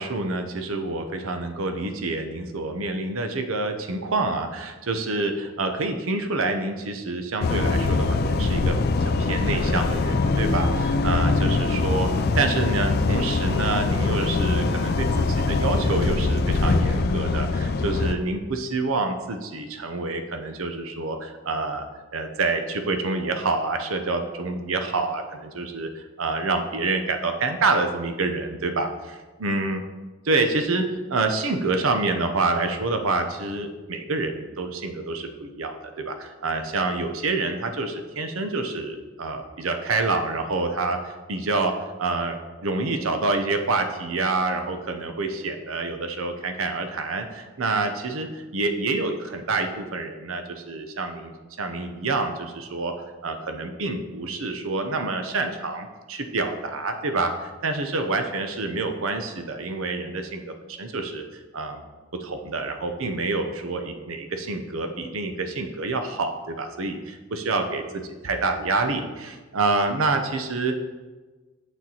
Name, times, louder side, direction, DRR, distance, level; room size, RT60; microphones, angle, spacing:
voice 1, 0.0-21.9 22.1-29.1 29.4-29.8 30.2-41.7 42.0-51.3 51.6-52.9 53.2-61.2 61.5-61.8 62.1-70.8, right 3 dB, 70° right, 6 dB, 0.7 m, -27 dB
sound 1, 7.4-18.1, left 3 dB, 45° left, 0.3 m, -23 dB
7.1 x 6.2 x 2.9 m, 1.3 s
head